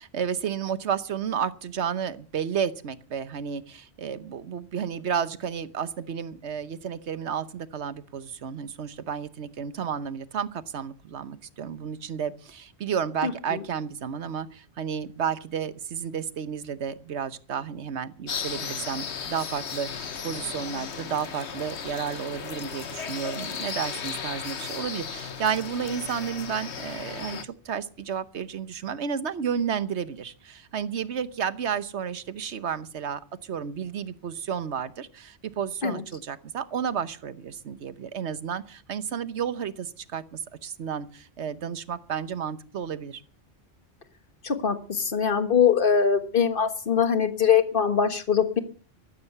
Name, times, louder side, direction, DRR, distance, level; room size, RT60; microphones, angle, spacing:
voice 1, 0.0-43.2, right 7 dB, 90° right, 14 dB, 1.3 m, -32 dB
voice 2, 13.2-13.6 35.8-36.0 44.4-48.6, left 7 dB, 55° left, 9 dB, 1.7 m, -23 dB
sound 1, 18.3-27.4, left 6 dB, 85° left, 1.4 m, -35 dB
14.0 x 13.0 x 6.7 m, 0.41 s
omnidirectional pair, 1.1 m